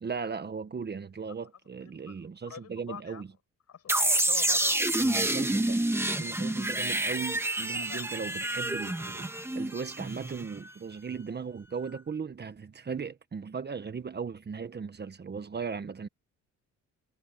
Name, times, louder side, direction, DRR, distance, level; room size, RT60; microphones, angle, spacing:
voice 1, 0.0-3.3 5.0-5.8 6.2-16.1, right 5 dB, 35° right, 1.4 m, -37 dB
voice 2, 1.8-3.2 3.7-4.8 7.7-8.1 9.5-9.6, left 8 dB, 55° left, 7.8 m, -46 dB
sound 1, 3.9-10.7, right 1 dB, 10° right, 1.8 m, -28 dB
cardioid pair, 90°, 30 cm